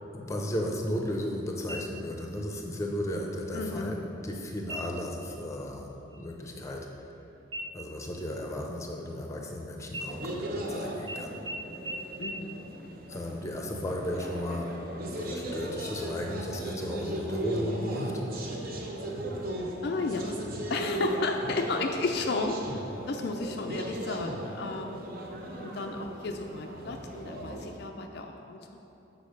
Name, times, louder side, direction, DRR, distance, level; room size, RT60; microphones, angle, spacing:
voice 1, 0.1-6.9 7.7-11.4 13.1-18.2, left 1 dB, 15° left, 1 dB, 0.6 m, -35 dB
sound 1, 1.7-2.3 2.7-2.8 3.4-3.9 4.6-5.1 5.5-5.8 6.1-7.2 7.5-9.5 9.9-10.7 11.1-11.2 11.5-11.6 11.9-12.0 12.2-12.3, equal, 75° right, 1.0 m, -41 dB
voice 2, 3.5-3.9 12.2-12.6 19.8-20.4 20.7-22.6 23.1-25.0 25.6-28.8, left 3 dB, 55° left, 3 dB, 0.4 m, -33 dB
sound 2, 10.1-27.7, right 1 dB, 50° right, 0.8 m, -37 dB
7.2 x 4.0 x 6.5 m, 3.0 s
head